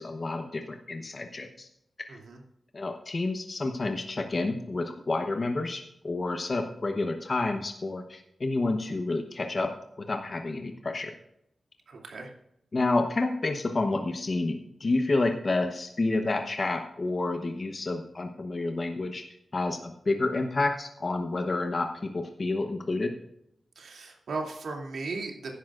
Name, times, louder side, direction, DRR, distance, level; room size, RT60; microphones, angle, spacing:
voice 1, 0.0-1.7 2.0-2.2 2.7-11.1 12.7-19.2 19.5-23.1, left 2 dB, 35° left, 4 dB, 1.0 m, -29 dB
voice 2, 11.9-12.3 23.8-25.5, right 3 dB, 90° right, 1 dB, 2.6 m, -36 dB
15.5 x 11.5 x 2.5 m, 0.76 s
wide cardioid pair, 155°, 0 cm